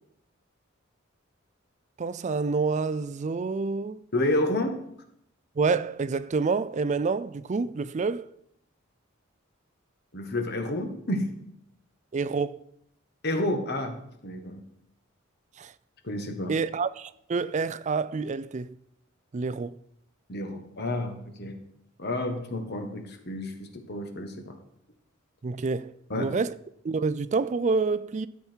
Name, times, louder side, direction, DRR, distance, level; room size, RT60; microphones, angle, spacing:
voice 1, 2.0-4.0 5.6-8.3 12.1-12.6 15.6-15.7 16.5-18.8 19.3-19.8 25.4-26.5 26.8-28.3, right 4 dB, 35° right, 0.4 m, -28 dB
voice 2, 4.1-4.7 10.1-11.3 13.2-14.6 16.0-16.5 20.3-21.6 22.0-24.5 26.1-26.3, left 1 dB, 55° left, 1.5 m, -30 dB
13.0 x 7.2 x 4.5 m
head